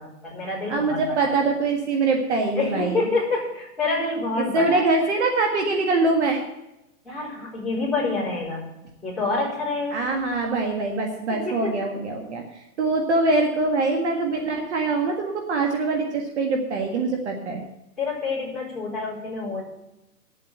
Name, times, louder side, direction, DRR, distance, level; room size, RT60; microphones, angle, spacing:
voice 1, 0.0-1.4 2.6-4.9 7.0-8.6 9.0-10.0 11.3-11.9 18.0-19.6, left 3 dB, ahead, -10 dB, 4.3 m, -27 dB
voice 2, 0.7-3.0 4.5-6.4 9.9-17.6, right 3 dB, 45° right, 3 dB, 1.7 m, -23 dB
10.0 x 7.8 x 9.1 m, 0.90 s
hypercardioid pair, 160°, 47 cm